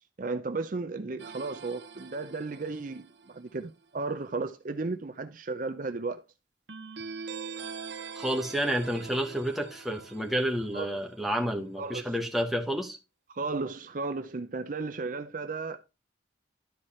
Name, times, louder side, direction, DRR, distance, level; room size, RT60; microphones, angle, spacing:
voice 1, 0.2-6.2 10.7-11.0 11.8-12.2 13.3-15.8, right 3 dB, 45° right, 0.6 m, -34 dB
sound 1, 1.2-3.5 6.7-11.1, right 5 dB, 70° right, 0.9 m, -43 dB
voice 2, 8.1-13.0, equal, ahead, 1.3 m, -30 dB
12.0 x 4.7 x 4.2 m
head